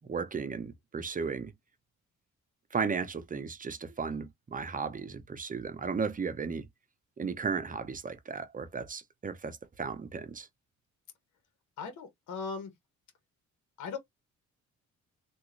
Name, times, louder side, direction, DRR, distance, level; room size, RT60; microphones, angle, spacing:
voice 1, 0.1-1.5 2.7-6.7 7.2-10.5, right 5 dB, 25° right, 0.7 m, -35 dB
voice 2, 11.8-12.7 13.8-14.0, left 5 dB, 75° left, 1.3 m, -38 dB
3.6 x 2.6 x 3.1 m
cardioid pair, 90°, 30 cm